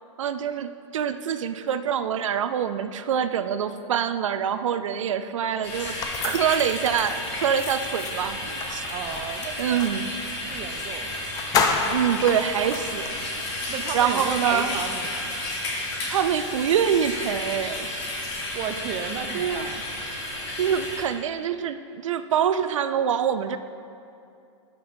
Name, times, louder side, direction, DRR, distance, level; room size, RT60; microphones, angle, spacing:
voice 1, 0.2-8.8 9.6-10.0 11.9-13.6 13.9-14.8 16.1-17.9 19.3-19.7 20.6-21.8 22.0-23.6, right 8 dB, 90° right, 11 dB, 0.4 m, -25 dB
sound 1, 5.6-21.0, left 1 dB, 60° left, 2.2 m, -32 dB
sound 2, 6.0-10.0 10.7-10.9 11.1-13.2, left 5 dB, 25° left, 0.6 m, -30 dB
voice 2, 8.9-9.8 10.5-11.2 13.7-15.4 18.5-19.8, right 8 dB, 30° right, 7 dB, 0.6 m, -34 dB
12.0 x 5.4 x 4.4 m, 2.7 s
hypercardioid pair, 140°, 16 cm